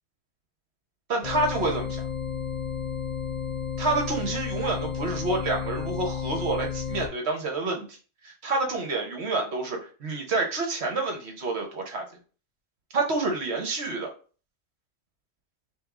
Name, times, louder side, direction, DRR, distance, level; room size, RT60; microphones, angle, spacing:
voice 1, 1.1-2.0 3.8-8.0 8.2-12.0 12.9-14.1, right 3 dB, 55° right, 2 dB, 1.0 m, -28 dB
sound 1, 1.2-7.1, left 7 dB, 90° left, 0.3 m, -32 dB
3.4 x 3.1 x 3.6 m, 0.38 s
omnidirectional pair, 1.5 m